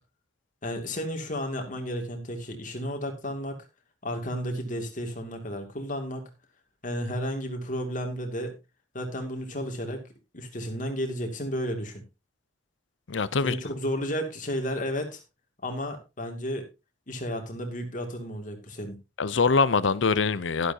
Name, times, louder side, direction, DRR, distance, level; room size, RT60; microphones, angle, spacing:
voice 1, 0.6-3.6 4.0-6.3 6.8-8.5 8.9-10.0 10.3-12.0 13.4-15.2 15.6-16.6 17.1-19.0, equal, 45° left, 2.5 m, -32 dB
voice 2, 13.1-13.6 19.2-20.7, left 4 dB, 80° left, 0.7 m, -23 dB
12.0 x 11.5 x 2.8 m
head